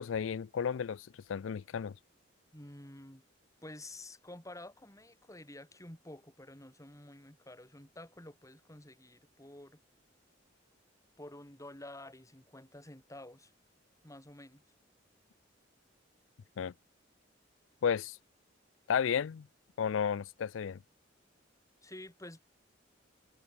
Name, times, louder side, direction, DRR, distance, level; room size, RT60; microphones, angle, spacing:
voice 1, 0.0-1.9 16.6-16.7 17.8-18.2 18.9-19.5 19.8-20.8, left 7 dB, 85° left, 0.4 m, -33 dB
voice 2, 2.5-3.2 3.6-9.8 11.2-13.5 14.0-14.6 21.8-22.4, left 1 dB, 15° left, 7.2 m, -50 dB
head